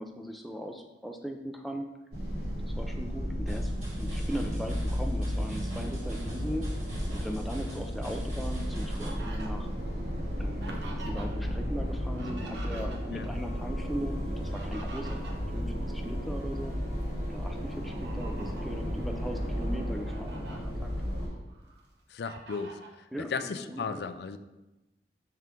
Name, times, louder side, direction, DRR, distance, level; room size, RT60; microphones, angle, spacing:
voice 1, 0.0-1.8 2.6-3.7 4.0-6.7 7.1-9.7 10.4-16.7 17.3-21.1 23.1-24.1, equal, ahead, 3 dB, 0.5 m, -39 dB
sound 1, 2.1-21.3, equal, 65° right, 2.1 m, -33 dB
sound 2, 3.5-9.1, equal, 40° right, 2.3 m, -44 dB
Fowl, 8.2-11.5 11.8-13.3 14.3-16.4 16.8-17.0 17.7-18.7 19.3-19.4 19.8-20.6 21.1-21.8 22.2-23.0, right 2 dB, 80° right, 1.0 m, -47 dB
voice 2, 22.1-22.8 23.2-24.4, left 5 dB, 70° left, 10 dB, 0.4 m, -35 dB
5.8 x 5.7 x 3.7 m, 1.0 s
head